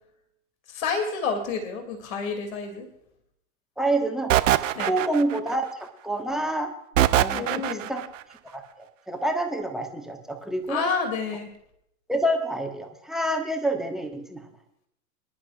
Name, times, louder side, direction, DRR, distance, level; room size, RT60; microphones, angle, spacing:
voice 1, 0.7-2.9 4.7-4.9 7.3-7.9 10.7-11.5, left 5 dB, 55° left, 4 dB, 2.7 m, -29 dB
voice 2, 3.8-6.7 7.2-8.0 8.5-10.9 12.1-14.4, right 1 dB, ahead, 3 dB, 1.4 m, -28 dB
sound 1, 4.3-5.5 7.0-8.1, right 13 dB, 55° right, 0.7 m, -22 dB
25.5 x 11.5 x 2.4 m, 0.74 s
figure-of-eight pair, 100°, 47 cm